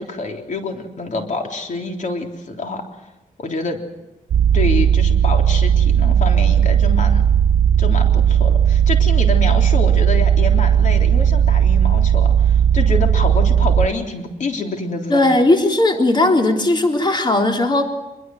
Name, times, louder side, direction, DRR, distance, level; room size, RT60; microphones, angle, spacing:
voice 1, 0.0-3.0 3.4-3.8 4.5-7.2 7.8-15.4, left 3 dB, 60° left, 4 dB, 3.6 m, -27 dB
sound 1, 4.3-13.9, right 9 dB, 90° right, 1.0 m, -15 dB
voice 2, 15.1-17.8, left 2 dB, 30° left, 3 dB, 3.4 m, -16 dB
26.0 x 22.0 x 7.8 m, 1.0 s
wide cardioid pair, 115°, 15 cm